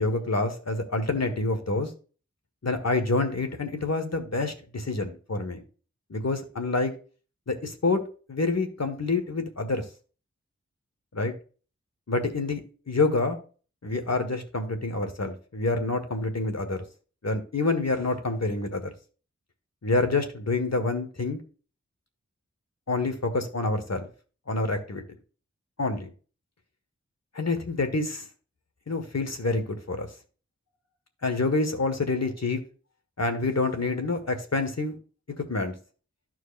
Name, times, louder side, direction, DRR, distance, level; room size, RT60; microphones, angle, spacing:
voice 1, 0.0-1.9 2.6-5.6 6.1-6.9 7.5-8.0 8.3-9.8 11.1-11.3 12.1-12.6 12.9-13.4 13.8-16.8 17.2-18.9 19.8-21.4 22.9-24.0 24.5-25.0 25.8-26.1 27.3-28.3 28.9-30.1 31.2-32.6 33.2-35.0 35.4-35.7, left 3 dB, 60° left, 7 dB, 1.6 m, -27 dB
13.5 x 4.7 x 2.6 m, 0.37 s
wide cardioid pair, 50°, 29 cm